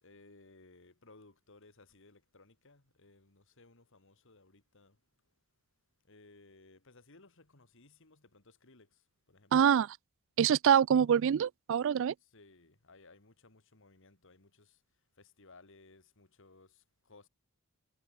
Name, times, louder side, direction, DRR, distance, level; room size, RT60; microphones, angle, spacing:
voice 1, 0.0-5.0 6.1-9.0 9.3-9.6 12.2-14.8 15.2-17.3, left 3 dB, 65° left, 2.4 m, -60 dB
voice 2, 9.5-10.0 10.4-12.1, right 8 dB, 65° right, 0.3 m, -25 dB
head